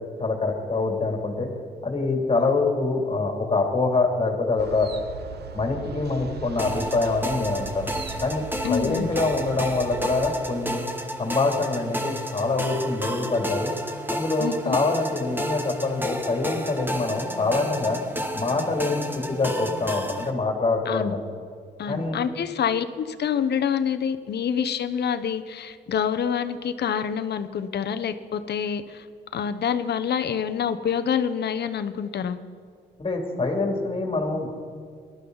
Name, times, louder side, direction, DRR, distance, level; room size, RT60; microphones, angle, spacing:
voice 1, 0.2-1.5 1.8-4.9 5.5-7.9 8.2-10.8 11.2-13.7 14.1-18.0 18.3-21.2 21.9-22.2 33.0-34.5, left 3 dB, 25° left, 2 dB, 2.9 m, -25 dB
sound 1, 4.6-10.3, right 7 dB, 55° right, 1.0 m, -39 dB
sound 2, 6.6-20.3, equal, 10° right, 1.4 m, -32 dB
voice 2, 8.6-9.1 14.4-14.8 20.9-21.1 21.8-29.0 29.3-32.4, left 7 dB, 55° left, 10 dB, 1.0 m, -27 dB
18.5 x 12.5 x 4.0 m, 2.2 s
cardioid pair, 90°, 20 cm